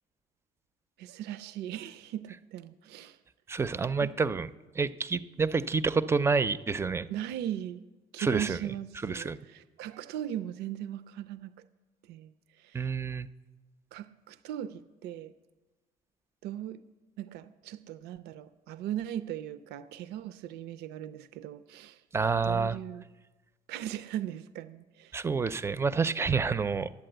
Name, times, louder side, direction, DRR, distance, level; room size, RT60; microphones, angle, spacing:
voice 1, 1.0-3.2 4.0-4.1 7.1-7.8 8.1-11.5 12.0-12.9 13.9-15.3 16.4-16.8 17.2-22.0 22.4-23.1 23.7-25.2, right 11 dB, 80° right, 13 dB, 0.5 m, -38 dB
voice 2, 3.5-4.5 4.8-7.1 8.2-8.6 9.0-9.4 12.7-13.3 22.1-22.8 25.1-26.9, right 4 dB, 15° right, 15 dB, 0.4 m, -28 dB
11.5 x 8.5 x 7.8 m, 1.2 s
cardioid pair, 110°, 17 cm